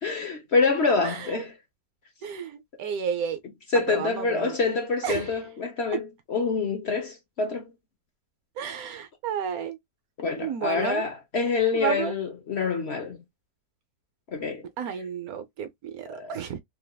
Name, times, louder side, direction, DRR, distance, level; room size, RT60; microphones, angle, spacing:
voice 1, 0.0-1.5 3.7-7.6 10.2-13.2 14.3-14.6 16.1-16.3, left 4 dB, 50° left, 0.8 m, -26 dB
voice 2, 1.0-1.4 2.2-3.4 3.9-4.6 5.0-5.3 8.6-9.8 10.4-11.0 11.7-12.2 14.8-16.6, right 8 dB, 70° right, 1.0 m, -32 dB
3.3 x 3.3 x 2.2 m
omnidirectional pair, 1.8 m